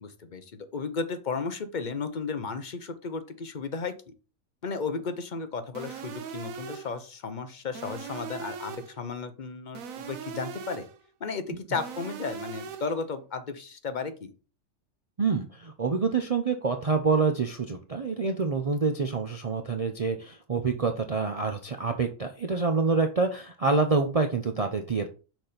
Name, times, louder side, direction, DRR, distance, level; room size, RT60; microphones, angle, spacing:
voice 1, 0.0-4.1 4.6-10.9 11.2-14.3, left 4 dB, 40° left, 9 dB, 0.9 m, -34 dB
sound 1, 5.7-7.0 7.7-9.0 9.7-11.0 11.7-13.0, right 6 dB, 90° right, 1.2 m, -40 dB
voice 2, 15.2-25.1, right 4 dB, 40° right, 5 dB, 0.5 m, -27 dB
6.2 x 4.3 x 5.0 m, 0.34 s
omnidirectional pair, 1.4 m